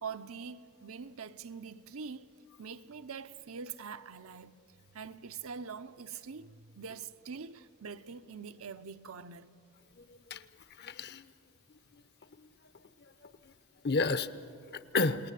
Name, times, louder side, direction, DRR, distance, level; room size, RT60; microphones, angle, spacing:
voice 1, 0.0-2.3 2.6-4.6 4.9-9.5, right 6 dB, 70° right, 0.8 m, -44 dB
voice 2, 10.8-11.3 12.4-12.5 13.8-15.3, left 3 dB, 50° left, 0.9 m, -31 dB
29.0 x 19.0 x 8.3 m
head